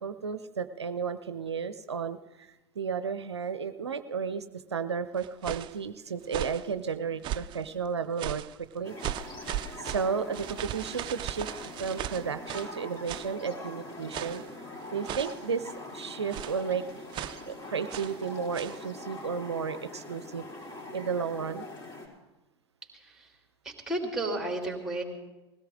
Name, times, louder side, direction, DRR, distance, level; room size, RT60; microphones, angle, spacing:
voice 1, 0.0-8.4 8.7-9.0 9.8-11.5 11.8-14.4 14.9-16.8 17.5-20.5 20.9-21.7, right 6 dB, 80° right, 11 dB, 0.6 m, -33 dB
sound 1, 5.2-5.8 6.2-6.7 7.2-7.6 8.2-8.6 9.0-12.8 13.1-13.3 14.1-14.5 15.0-15.5 16.3-16.6 17.1-17.4 17.9-18.2 18.5-18.8, right 12 dB, 35° right, 0.5 m, -37 dB
sound 2, 8.8-22.1, left 2 dB, 30° left, 4.1 m, -43 dB
voice 2, 23.6-25.0, right 2 dB, 5° right, 2 dB, 3.2 m, -33 dB
20.5 x 16.5 x 3.6 m, 1.1 s
figure-of-eight pair, 85°, 14 cm